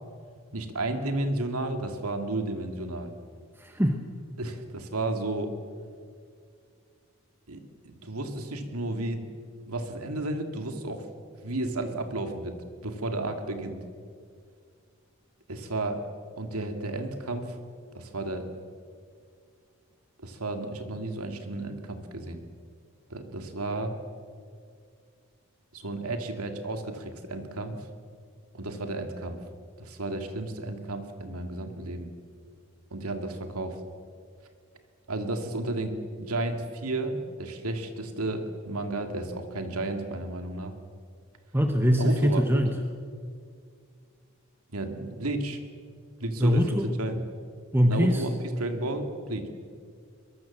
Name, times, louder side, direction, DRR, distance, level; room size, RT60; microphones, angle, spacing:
voice 1, 0.5-3.1 4.4-5.6 7.5-9.3 9.7-11.1 11.4-12.6 12.8-13.8 15.5-16.0 16.4-17.6 17.9-18.5 20.2-22.4 23.1-24.0 25.7-27.8 28.5-29.4 29.8-32.1 32.9-33.8 35.1-40.7 42.0-42.6 44.7-45.6 46.2-47.2 47.9-49.5, right 2 dB, 85° right, 6 dB, 2.5 m, -32 dB
voice 2, 3.6-4.0 41.5-42.7 46.4-46.9 47.7-48.2, equal, 10° right, 4 dB, 1.2 m, -22 dB
22.5 x 22.0 x 7.5 m, 2.2 s
head